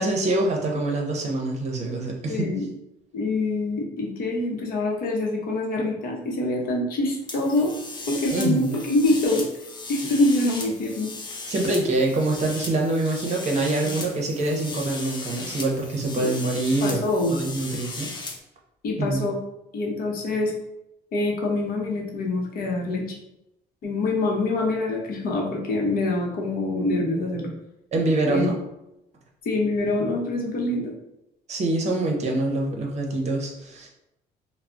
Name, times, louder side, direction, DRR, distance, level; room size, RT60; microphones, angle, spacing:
voice 1, 0.0-2.5 8.3-8.7 11.5-17.0 17.3-18.1 19.0-19.2 27.9-28.5 31.5-33.9, right 2 dB, 40° right, 0 dB, 0.7 m, -25 dB
voice 2, 2.3-2.7 3.1-7.7 8.1-9.5 9.9-11.1 16.2-16.3 16.8-17.4 18.8-19.4 19.7-20.5 21.1-23.2 23.8-27.5 28.3-28.5 29.4-30.9, left 2 dB, 60° left, -1 dB, 0.7 m, -25 dB
sound 1, 7.3-18.4, left 3 dB, 25° left, 0.5 m, -37 dB
2.3 x 2.0 x 3.7 m, 0.86 s
cardioid pair, 110°, 17 cm